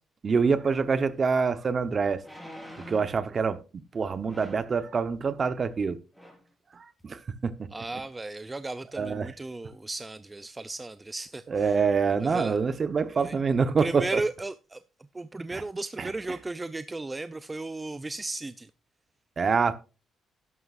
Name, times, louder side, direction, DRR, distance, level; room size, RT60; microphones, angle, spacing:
voice 1, 0.2-2.2 2.9-6.0 7.0-7.7 9.0-9.3 11.5-14.2 15.5-15.6 16.0-16.1 19.4-19.7, right 5 dB, 40° right, 1.0 m, -26 dB
sound 1, 1.2-1.3 2.2-3.2 4.3-4.7 5.7-5.9 6.1-6.5 7.0-7.1, equal, ahead, 4.8 m, -46 dB
voice 2, 7.7-11.8 12.2-12.6 13.1-13.4 13.8-14.8 15.1-18.7, right 2 dB, 20° right, 0.5 m, -35 dB
12.0 x 11.0 x 2.5 m
cardioid pair, 90°, 0 cm